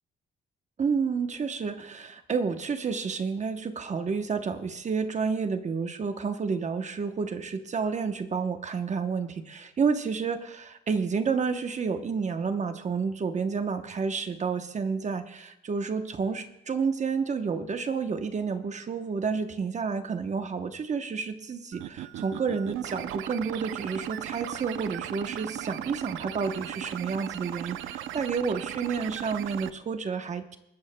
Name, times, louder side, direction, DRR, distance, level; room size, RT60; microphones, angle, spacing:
voice 1, 0.8-30.6, right 5 dB, 35° right, 8 dB, 0.9 m, -30 dB
sound 1, 21.7-29.7, right 12 dB, 85° right, 0.6 m, -37 dB
21.5 x 14.0 x 2.2 m, 0.84 s
cardioid pair, 105°, 20 cm